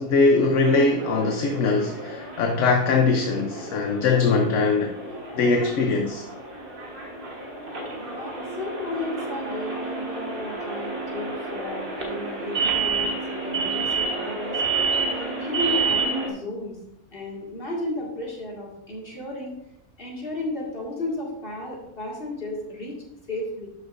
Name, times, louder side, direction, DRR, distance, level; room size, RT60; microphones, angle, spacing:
voice 1, 0.0-5.0 5.3-6.3, left 3 dB, 60° left, 1.0 m, -21 dB
sound 1, 0.6-16.3, right 4 dB, 40° right, 1.5 m, -30 dB
voice 2, 8.1-14.6 15.0-16.8 17.1-19.5 20.0-23.7, left 2 dB, 35° left, 2.2 m, -33 dB
11.5 x 6.5 x 2.6 m
omnidirectional pair, 1.6 m